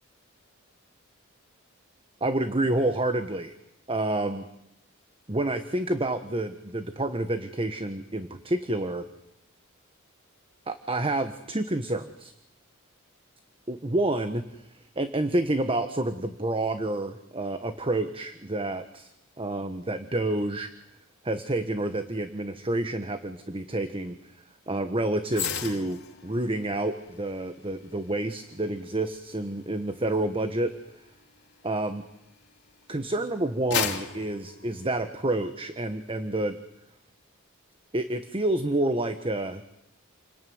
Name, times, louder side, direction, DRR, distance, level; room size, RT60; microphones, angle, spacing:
voice 1, 2.2-3.5 3.9-4.5 5.3-9.1 10.7-12.3 13.7-14.6 15.0-19.1 19.4-20.7 21.2-24.2 24.7-30.7 31.6-32.0 32.9-36.6 37.9-39.6, right 1 dB, 25° right, 9 dB, 1.3 m, -29 dB
sound 1, 25.3-32.7 33.2-35.5 35.9-36.1, left 8 dB, 55° left, 3.5 m, -37 dB
29.5 x 21.0 x 9.5 m, 0.83 s
head